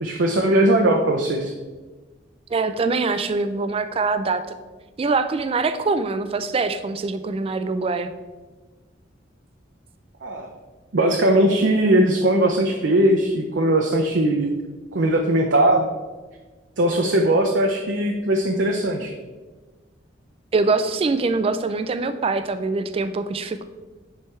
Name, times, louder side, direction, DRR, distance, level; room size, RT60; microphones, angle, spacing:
voice 1, 0.0-1.5 10.2-10.5 10.9-14.5 14.9-15.9 16.8-19.1, right 1 dB, 75° right, 2 dB, 0.6 m, -19 dB
voice 2, 2.5-4.4 5.0-8.1 20.5-23.6, right 3 dB, 30° right, 10 dB, 0.3 m, -23 dB
9.5 x 3.3 x 4.4 m, 1.3 s
head